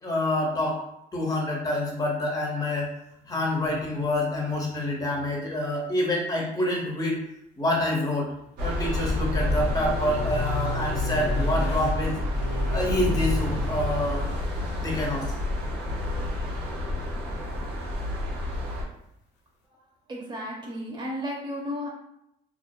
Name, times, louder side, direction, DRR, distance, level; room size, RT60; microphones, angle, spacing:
voice 1, 0.0-0.8 1.1-2.9 3.3-7.2 7.5-8.3 8.6-12.2 12.7-14.3 14.8-15.3, left 1 dB, 20° left, -2 dB, 0.8 m, -27 dB
sound 1, 3.2-4.2 4.5-5.3 5.6-5.7 8.2-14.0 16.9-17.0, left 4 dB, 90° left, 0.4 m, -36 dB
sound 2, 8.6-18.8, left 1 dB, 75° right, 0.7 m, -29 dB
voice 2, 20.1-21.9, equal, 25° right, -2 dB, 0.8 m, -33 dB
2.5 x 2.4 x 2.2 m, 0.79 s
cardioid pair, 110°, 17 cm